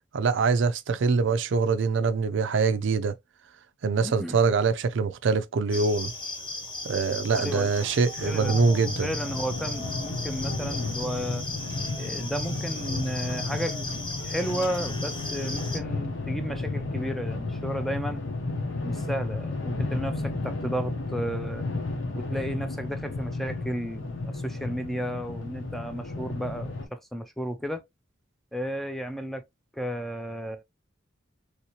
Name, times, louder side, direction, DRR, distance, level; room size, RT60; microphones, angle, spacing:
voice 1, 0.1-3.2 3.8-6.1 6.8-9.1, right 4 dB, 65° right, 0.4 m, -24 dB
voice 2, 4.0-4.4 7.4-7.7 8.2-8.6 9.0-11.5 12.0-18.2 18.8-21.7 22.1-27.8 28.5-29.5 29.7-30.6, equal, ahead, 0.4 m, -33 dB
sound 1, 5.7-15.8, left 2 dB, 25° left, 1.0 m, -36 dB
sound 2, 8.2-26.9, left 2 dB, 75° left, 1.0 m, -33 dB
3.2 x 2.7 x 2.9 m
head